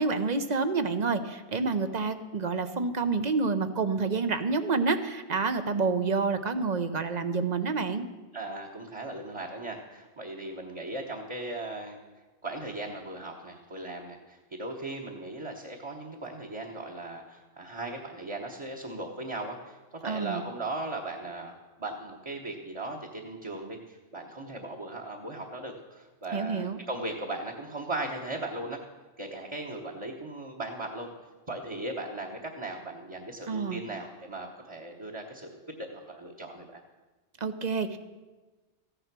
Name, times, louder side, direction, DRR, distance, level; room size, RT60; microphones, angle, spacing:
voice 1, 0.0-8.1 20.0-20.4 26.3-26.8 33.5-33.8 37.4-38.0, right 4 dB, 40° right, 10 dB, 0.8 m, -28 dB
voice 2, 8.3-12.0 12.4-28.8 29.2-31.1 31.5-36.8, right 2 dB, 25° right, -1 dB, 1.1 m, -38 dB
15.0 x 10.0 x 6.1 m, 1.2 s
omnidirectional pair, 1.2 m